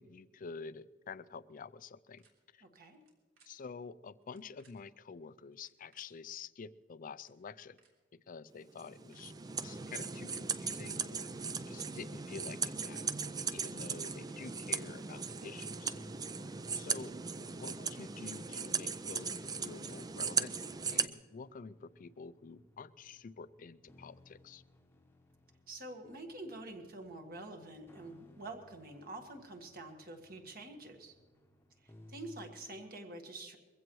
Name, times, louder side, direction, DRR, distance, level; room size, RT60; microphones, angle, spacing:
voice 1, 0.0-2.2 2.5-2.6 3.5-7.8 8.3-9.3 9.6-13.1 13.5-16.0 16.8-17.2 17.5-20.5 20.9-24.6, left 5 dB, 40° left, 16 dB, 0.4 m, -48 dB
sound 1, 2.2-2.3 2.9-3.5 4.2-4.7 5.5-6.0 6.8-6.9 7.1-7.3 7.8-7.9 8.8-9.2 9.5-10.0 10.5-11.9 12.6-13.0 13.9-14.4 15.2-15.7 16.6-17.0 17.6-17.8 18.2-18.7 19.4-20.0, right 5 dB, 75° right, 3.2 m, -68 dB
voice 2, 2.6-3.0 25.7-31.2 31.8-33.6, right 2 dB, 45° right, 5 dB, 1.6 m, -47 dB
sound 2, 8.8-21.1, right 5 dB, 20° right, 0.4 m, -38 dB
sound 3, 14.4-32.8, left 1 dB, 10° left, 0.9 m, -62 dB
22.0 x 15.5 x 3.1 m, 1.4 s
head